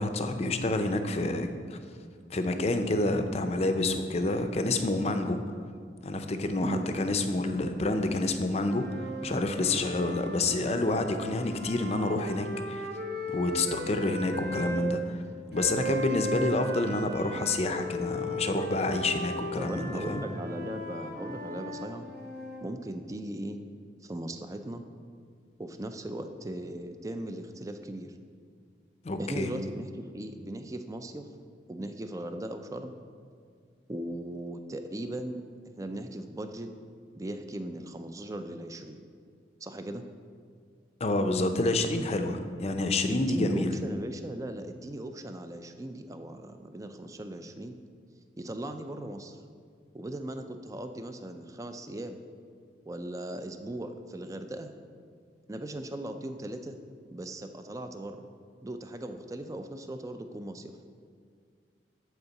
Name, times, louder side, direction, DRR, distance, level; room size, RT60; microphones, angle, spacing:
voice 1, 0.0-1.8 2.3-5.4 6.0-12.9 13.3-15.2 15.5-20.2 29.0-29.5 41.0-43.8, left 2 dB, 35° left, 7 dB, 0.5 m, -28 dB
sound 1, 8.6-14.8 15.5-22.6, equal, 65° right, 1.1 m, -37 dB
voice 2, 19.6-22.0 22.6-23.6 24.0-24.8 25.6-28.1 29.2-31.2 31.7-32.9 33.9-35.4 35.8-36.7 37.1-39.0 39.6-40.0 43.1-47.7 48.4-49.4 49.9-52.2 52.9-54.7 55.5-56.8 57.1-58.2 58.6-60.7, right 1 dB, 20° right, 7 dB, 0.4 m, -38 dB
8.1 x 4.7 x 7.0 m, 2.1 s
head